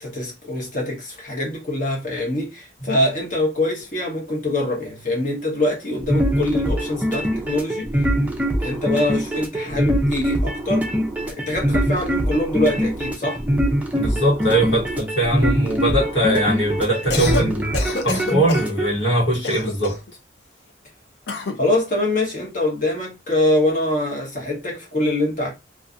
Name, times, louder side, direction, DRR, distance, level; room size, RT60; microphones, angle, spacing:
voice 1, 0.0-8.0 8.6-10.9 11.3-13.4 21.6-25.5, left 1 dB, 45° left, 1.0 m, -24 dB
sound 1, 6.0-18.9, equal, 10° right, 0.4 m, -23 dB
voice 2, 13.9-17.8 18.0-20.0, right 1 dB, 85° left, 1.2 m, -21 dB
Cough, 16.9-17.5 17.7-18.7 19.4-20.1 21.3-21.6, left 3 dB, 60° left, 0.5 m, -27 dB
2.6 x 2.4 x 2.5 m
head